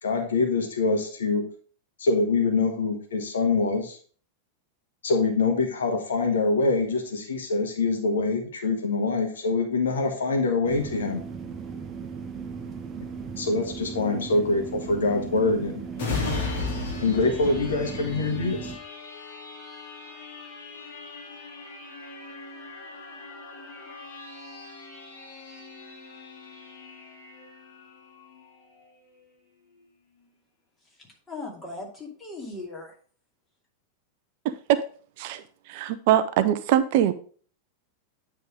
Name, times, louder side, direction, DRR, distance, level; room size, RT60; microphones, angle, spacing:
voice 1, 0.0-1.4 2.0-4.0 5.0-11.2 13.4-15.8 17.0-18.7, left 3 dB, 65° left, 4 dB, 1.4 m, -24 dB
sound 1, 10.6-18.8, right 6 dB, 25° right, 0.9 m, -37 dB
sound 2, 15.9-29.3 29.7-29.9, left 4 dB, 50° left, 2.0 m, -37 dB
voice 2, 30.8-33.0, left 2 dB, 15° left, -1 dB, 2.4 m, -39 dB
voice 3, 34.4-34.8 35.2-37.1, right 11 dB, 50° right, 12 dB, 0.5 m, -23 dB
9.5 x 3.7 x 4.9 m, 0.43 s
figure-of-eight pair, 90°, 0 cm